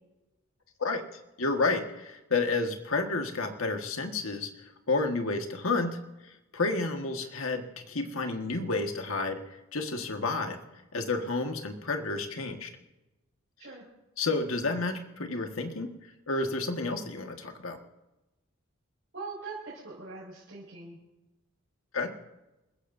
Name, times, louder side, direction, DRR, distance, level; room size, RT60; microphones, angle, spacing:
voice 1, 1.4-4.5 4.9-9.4 9.7-10.6 10.9-12.7 14.2-15.9 16.3-17.8 21.9-22.1, left 3 dB, 80° left, 5 dB, 1.6 m, -30 dB
voice 2, 19.1-21.0, right 3 dB, 55° right, -8 dB, 5.5 m, -42 dB
28.5 x 15.5 x 2.7 m, 1.0 s
head